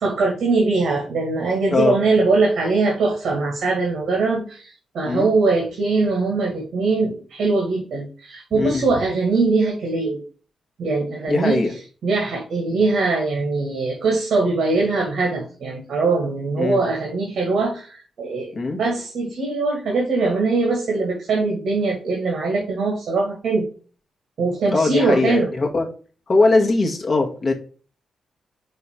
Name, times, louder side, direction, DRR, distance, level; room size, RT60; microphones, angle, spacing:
voice 1, 0.0-10.2 10.8-11.6 12.0-23.7 24.4-25.5, right 3 dB, 65° right, -1 dB, 2.0 m, -21 dB
voice 2, 8.5-8.8 11.3-11.7 16.6-16.8 18.5-18.8 24.7-25.9 26.3-27.5, left 3 dB, 35° left, 2 dB, 1.6 m, -20 dB
5.7 x 4.5 x 4.8 m, 0.39 s
wide cardioid pair, 140°, 0 cm